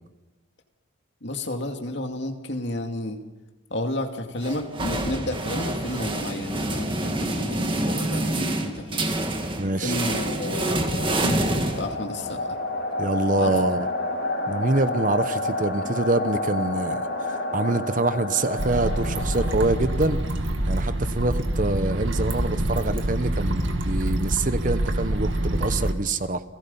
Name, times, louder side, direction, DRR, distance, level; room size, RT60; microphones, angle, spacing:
voice 1, 1.2-3.2 3.7-9.1 9.8-11.5 11.8-12.4 13.4-13.6, left 1 dB, 60° left, 4 dB, 2.4 m, -31 dB
sound 1, 4.4-12.3, right 1 dB, 25° right, 1.9 m, -27 dB
sound 2, 9.5-20.4, left 1 dB, 85° left, 4.3 m, -30 dB
voice 2, 9.6-10.0 13.0-13.9 14.5-17.0 17.3-20.2 20.7-26.4, right 2 dB, 40° right, 12 dB, 0.9 m, -25 dB
sound 3, 18.6-25.9, right 1 dB, 70° right, 2.1 m, -26 dB
30.0 x 17.0 x 5.6 m, 1.2 s
head